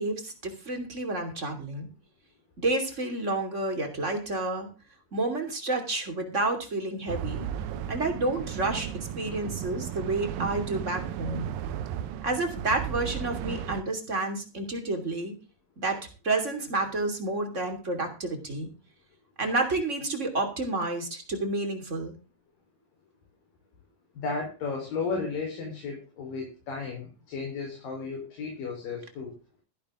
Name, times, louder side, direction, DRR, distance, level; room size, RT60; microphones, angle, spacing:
voice 1, 0.0-1.9 2.6-4.7 5.1-7.5 7.9-11.5 12.2-15.3 15.8-18.7 19.4-22.1, right 2 dB, 20° right, 5 dB, 2.9 m, -30 dB
sound 1, 7.1-13.8, right 10 dB, 90° right, 2.8 m, -35 dB
voice 2, 24.2-29.3, left 4 dB, 75° left, 0 dB, 6.0 m, -34 dB
14.5 x 11.5 x 3.8 m, 0.32 s
omnidirectional pair, 3.9 m